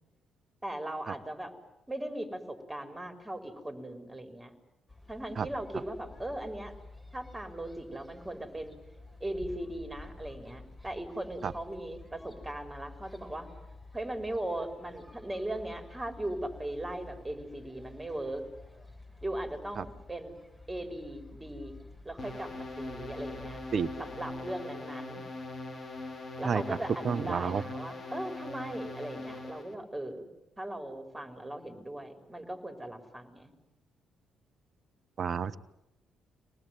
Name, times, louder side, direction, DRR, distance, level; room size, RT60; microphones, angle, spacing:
voice 1, 0.6-1.5 1.9-4.5 5.1-6.7 7.1-8.7 9.2-13.5 13.9-18.4 19.2-20.4 20.7-21.8 22.0-23.6 24.0-25.2 26.4-30.3 30.6-33.5, right 1 dB, 15° right, 6 dB, 5.0 m, -38 dB
sound 1, 4.9-24.5, left 2 dB, 15° left, 6.6 m, -51 dB
sound 2, 22.2-29.7, left 2 dB, 45° left, 4.1 m, -41 dB
voice 2, 27.0-27.6 35.2-35.6, right 6 dB, 50° right, 15 dB, 1.1 m, -30 dB
25.5 x 19.5 x 9.5 m, 0.90 s
hypercardioid pair, 45°, 0 cm